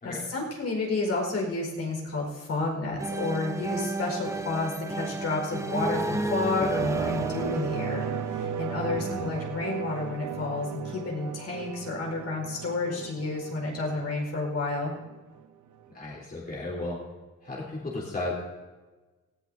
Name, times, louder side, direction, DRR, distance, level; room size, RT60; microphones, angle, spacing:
voice 1, 0.0-14.9, left 3 dB, 55° left, -1 dB, 4.9 m, -31 dB
sound 1, 3.0-8.7, right 2 dB, 10° right, 1.0 m, -32 dB
sound 2, 6.4-15.4 15.8-15.9, right 7 dB, 75° right, 1.1 m, -36 dB
voice 2, 8.9-9.3 15.9-17.0 17.4-18.3, left 2 dB, 30° left, -5 dB, 3.7 m, -34 dB
18.5 x 17.0 x 2.8 m, 1.2 s
cardioid pair, 120°, 30 cm